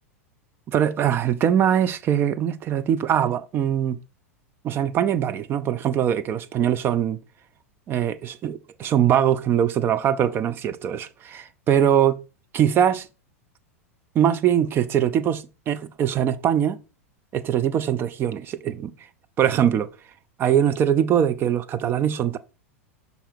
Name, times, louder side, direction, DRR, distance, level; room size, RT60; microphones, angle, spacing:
voice 1, 0.7-4.0 4.6-7.2 7.9-12.2 12.5-13.1 14.1-16.8 17.3-18.9 19.4-19.9 20.4-22.4, right 9 dB, 30° right, 0.5 m, -22 dB
5.6 x 4.1 x 4.4 m
figure-of-eight pair, 90°, 8 cm